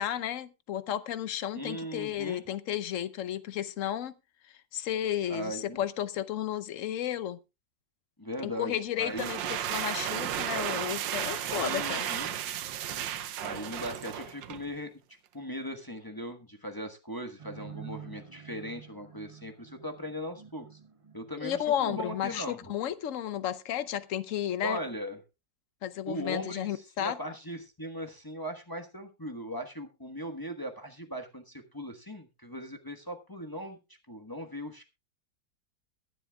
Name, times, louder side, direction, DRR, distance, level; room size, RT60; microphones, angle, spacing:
voice 1, 0.0-4.1 4.7-7.4 8.4-12.1 21.4-24.8 25.8-27.2, left 10 dB, 65° left, 0.8 m, -33 dB
voice 2, 1.5-2.4 5.3-5.8 8.2-9.5 11.6-12.4 13.4-14.9 15.3-20.8 21.1-22.7 24.6-25.2 26.1-33.8 34.1-34.8, equal, 15° left, 0.9 m, -39 dB
sound 1, 9.0-14.7, right 10 dB, 85° right, 1.5 m, -34 dB
sound 2, 17.4-22.4, right 8 dB, 30° right, 0.6 m, -49 dB
22.5 x 7.9 x 2.3 m
omnidirectional pair, 2.0 m